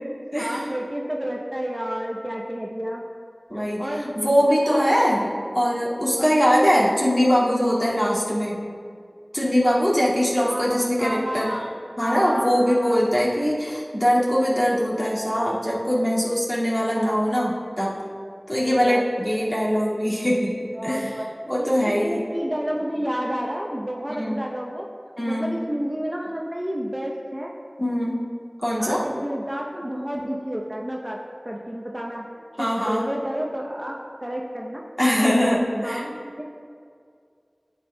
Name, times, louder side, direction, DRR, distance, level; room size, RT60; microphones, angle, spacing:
voice 1, 0.4-3.1 3.8-4.1 4.5-4.9 6.2-6.5 10.5-11.7 12.0-13.3 18.5-19.0 20.7-21.3 21.6-24.9 25.2-27.5 28.8-32.3 32.6-34.8 35.7-36.4, equal, 20° right, -2 dB, 0.7 m, -30 dB
voice 2, 3.5-3.9 4.1-5.3 5.5-8.6 9.3-11.6 12.0-18.0 18.5-21.1 21.5-22.3 24.2-24.4 25.2-25.5 27.8-28.3 28.6-29.0 32.6-33.0 35.0-36.0, equal, 25° left, -7 dB, 2.1 m, -22 dB
12.0 x 8.4 x 2.2 m, 2.2 s
wide cardioid pair, 45°, 0 cm